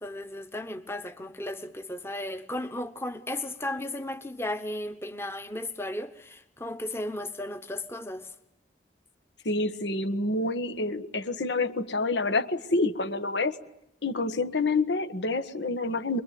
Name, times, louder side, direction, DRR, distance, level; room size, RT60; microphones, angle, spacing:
voice 1, 0.0-8.3, left 1 dB, 15° left, 1.0 m, -35 dB
voice 2, 9.4-13.6 14.0-16.2, left 2 dB, 85° left, 1.4 m, -28 dB
25.5 x 22.5 x 9.4 m
head